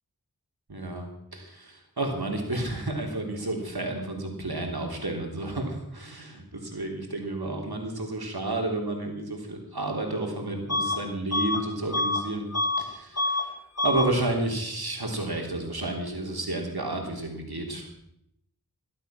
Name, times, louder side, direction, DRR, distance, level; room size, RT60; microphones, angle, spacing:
voice 1, 0.7-12.5 12.8-13.5 13.8-17.9, right 2 dB, 85° right, 1 dB, 3.3 m, -31 dB
Bus / Alarm, 10.7-11.0 11.3-12.9 13.1-13.5 13.8-14.1, left 2 dB, 40° left, 2.2 m, -27 dB
18.0 x 12.0 x 5.8 m, 0.76 s
wide cardioid pair, 45°, 37 cm